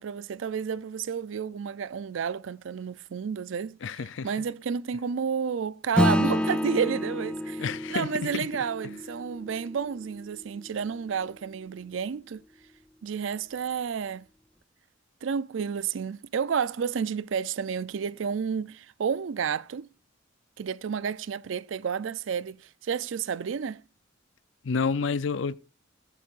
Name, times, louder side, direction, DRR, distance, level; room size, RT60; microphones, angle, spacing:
voice 1, 0.0-12.4 13.0-14.3 15.2-19.9 20.6-23.8, right 6 dB, 75° right, 0.4 m, -31 dB
voice 2, 3.8-4.3 7.6-8.5 24.6-25.5, left 5 dB, 70° left, 0.5 m, -29 dB
Acoustic guitar / Strum, 5.9-10.7, left 1 dB, 5° left, 0.4 m, -29 dB
16.0 x 7.4 x 2.5 m
head